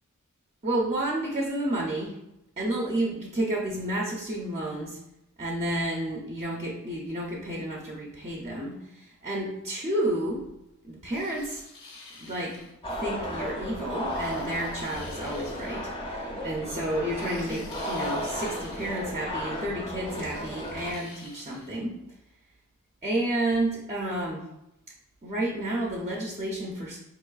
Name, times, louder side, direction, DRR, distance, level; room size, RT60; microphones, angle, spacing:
voice 1, 0.6-2.2 2.6-5.0 5.4-10.4 10.8-11.6 12.2-12.6 12.9-21.9 23.0-24.4 25.2-27.0, right 1 dB, 30° right, -3 dB, 0.5 m, -31 dB
sound 1, 11.1-12.7 14.1-15.8 17.1-19.1 20.0-21.7, left 3 dB, 70° left, 0.7 m, -49 dB
sound 2, 12.8-20.9, equal, 25° left, 0.5 m, -34 dB
4.7 x 3.0 x 2.3 m, 0.88 s
head